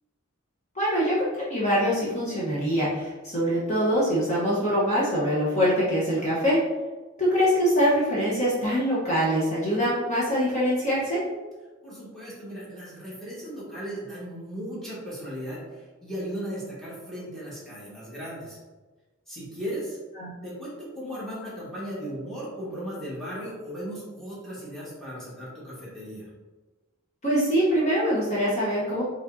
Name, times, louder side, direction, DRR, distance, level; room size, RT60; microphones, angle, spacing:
voice 1, 0.7-1.2 1.5-6.6 7.2-11.2 20.2-20.3 27.2-29.0, equal, 35° left, -7 dB, 1.1 m, -24 dB
voice 2, 11.8-18.6 19.3-20.0 20.4-26.3, equal, ahead, -9 dB, 1.5 m, -36 dB
5.1 x 3.3 x 2.7 m, 1.2 s
head